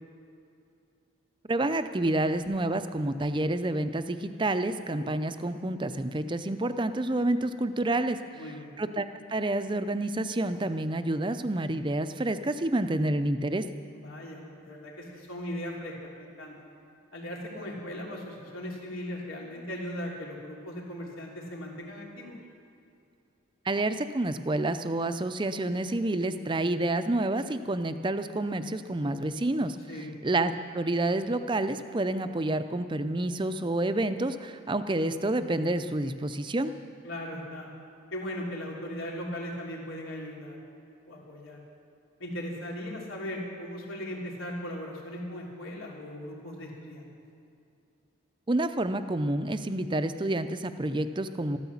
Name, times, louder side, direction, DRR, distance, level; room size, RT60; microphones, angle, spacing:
voice 1, 1.5-8.4 8.8-13.7 23.6-29.8 30.2-36.7 48.5-51.6, right 2 dB, 25° right, 10 dB, 0.5 m, -29 dB
voice 2, 8.3-8.8 13.9-16.7 17.1-22.4 29.9-30.1 37.0-37.7 38.1-40.6 41.1-41.6 42.2-47.1, equal, 80° left, -2 dB, 3.3 m, -38 dB
13.5 x 13.0 x 7.2 m, 2.6 s
head